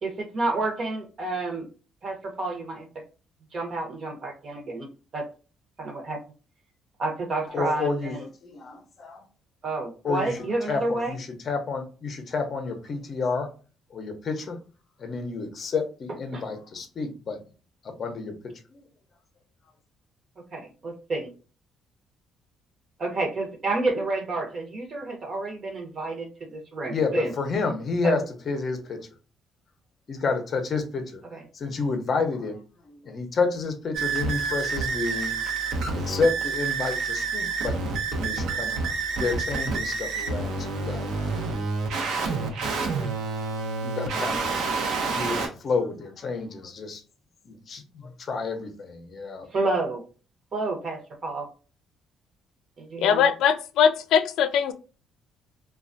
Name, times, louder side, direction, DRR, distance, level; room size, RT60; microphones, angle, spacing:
voice 1, 0.0-1.7 2.0-2.9 3.5-4.9 5.1-5.2 5.8-6.2 7.0-8.3 9.6-11.1 16.3-16.4 20.5-21.3 23.0-27.3 28.0-28.2 31.3-31.4 49.5-50.0 50.5-51.5 52.8-53.3, right 2 dB, 40° right, 0.8 m, -29 dB
voice 2, 7.5-9.2 10.0-13.5 13.9-14.6 15.0-17.4 17.8-18.8 26.9-29.0 30.1-31.2 31.5-32.6 32.9-35.3 35.9-37.8 38.1-41.4 42.3-42.6 43.8-44.5 45.1-47.0 47.4-49.5, left 4 dB, 40° left, 0.6 m, -30 dB
sound 1, 33.9-45.5, right 4 dB, 80° right, 0.7 m, -28 dB
voice 3, 53.0-54.7, left 8 dB, 80° left, 0.3 m, -21 dB
3.2 x 2.3 x 2.5 m
cardioid pair, 140°, 0 cm